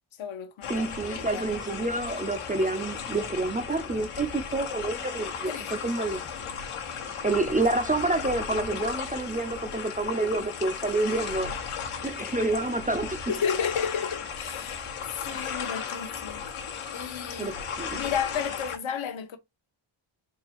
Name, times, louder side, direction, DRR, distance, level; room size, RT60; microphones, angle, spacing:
voice 1, 0.2-1.9 5.5-5.7 13.3-16.5 16.9-17.5 17.9-19.4, left 7 dB, 65° left, 0.9 m, -33 dB
sound 1, 0.6-18.8, left 6 dB, 85° left, 1.2 m, -35 dB
voice 2, 0.7-6.3 7.2-11.5 12.0-13.2 17.4-18.0, right 2 dB, 20° right, 0.4 m, -28 dB
3.7 x 3.3 x 2.9 m
wide cardioid pair, 105°, 49 cm